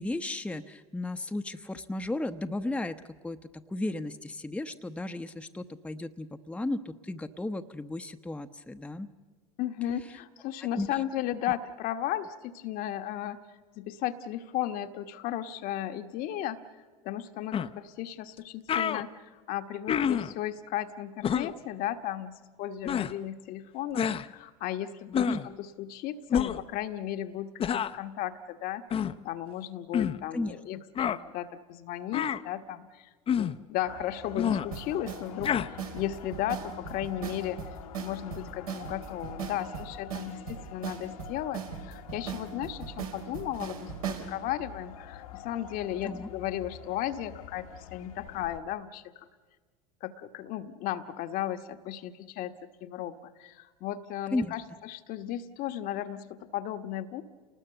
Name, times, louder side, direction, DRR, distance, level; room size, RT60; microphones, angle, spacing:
voice 1, 0.0-3.0 3.2-9.1 10.7-11.0 25.3-25.4 30.3-30.6 46.0-46.3 54.3-54.5, left 2 dB, 5° left, 8 dB, 1.0 m, -34 dB
voice 2, 9.6-13.4 13.7-16.6 17.0-37.6 38.0-49.3 50.0-52.5 52.8-57.2, left 12 dB, 50° left, 8 dB, 1.3 m, -35 dB
sound 1, 17.5-17.7 18.4-18.5 18.7-19.0 19.9-20.3 21.2-21.5 22.8-23.1 24.0-24.3 25.1-25.5 26.3-26.6 27.6-28.0 28.9-29.2 29.9-30.2 31.0-31.2 32.1-32.4 33.3-33.6 34.4-34.7 35.4-35.7, left 8 dB, 30° left, 0.8 m, -28 dB
sound 2, 33.8-48.6, left 10 dB, 75° left, 1.7 m, -47 dB
sound 3, 34.7-44.3, right 8 dB, 80° right, 3.8 m, -39 dB
29.5 x 19.5 x 6.9 m, 1.5 s
hypercardioid pair, 80°, 18 cm